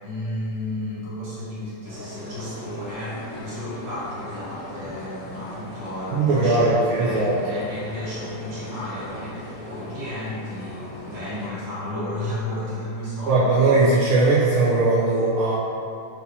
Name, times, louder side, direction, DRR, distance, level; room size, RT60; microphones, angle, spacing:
voice 1, 0.0-13.6, left 1 dB, 65° right, -9 dB, 2.0 m, -33 dB
sound 1, 1.8-11.5, left 1 dB, 70° left, 1.4 m, -39 dB
voice 2, 6.1-7.4 13.3-15.5, right 2 dB, 85° right, -9 dB, 1.5 m, -19 dB
5.7 x 2.8 x 2.7 m, 2.7 s
omnidirectional pair, 2.4 m